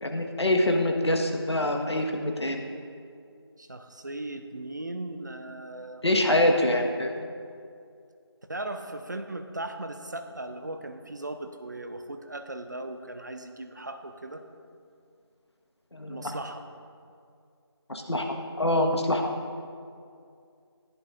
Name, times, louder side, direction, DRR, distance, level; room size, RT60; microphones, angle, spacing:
voice 1, 0.0-2.6 6.0-7.1 15.9-16.3 17.9-18.3 18.6-19.2, left 1 dB, 80° left, 2 dB, 1.4 m, -25 dB
voice 2, 3.6-6.0 8.5-14.4 16.1-16.7, right 2 dB, 45° right, 7 dB, 0.7 m, -38 dB
15.5 x 10.5 x 2.6 m, 2.4 s
figure-of-eight pair, 170°, 14 cm